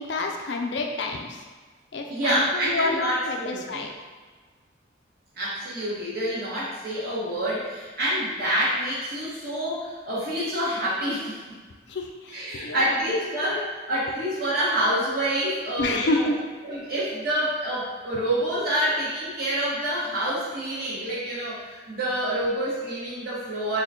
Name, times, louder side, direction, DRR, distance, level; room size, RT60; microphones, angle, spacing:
voice 1, 0.0-1.4 1.9-3.9 11.9-13.0 13.4-13.6 15.8-16.4, left 3 dB, 65° left, 2 dB, 0.4 m, -29 dB
voice 2, 2.1-3.9 5.3-11.4 12.3-16.3 16.6-23.8, right 1 dB, 50° right, -8 dB, 1.3 m, -27 dB
4.3 x 2.2 x 3.6 m, 1.4 s
head